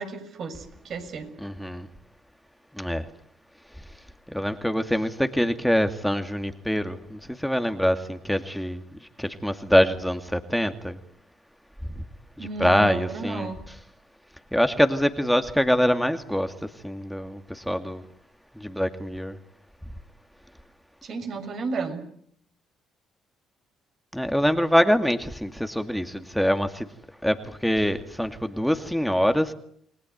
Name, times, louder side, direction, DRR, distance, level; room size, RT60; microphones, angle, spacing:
voice 1, 0.0-1.3 12.4-13.6 21.0-22.1, right 4 dB, 60° right, 6.5 m, -33 dB
voice 2, 1.4-1.9 2.8-3.1 4.3-8.8 9.2-11.0 12.0-12.1 12.4-13.5 14.5-18.0 18.6-19.4 24.1-26.9 27.2-29.5, equal, ahead, 2.4 m, -24 dB
29.5 x 20.5 x 9.5 m
supercardioid pair, 60°, 0 cm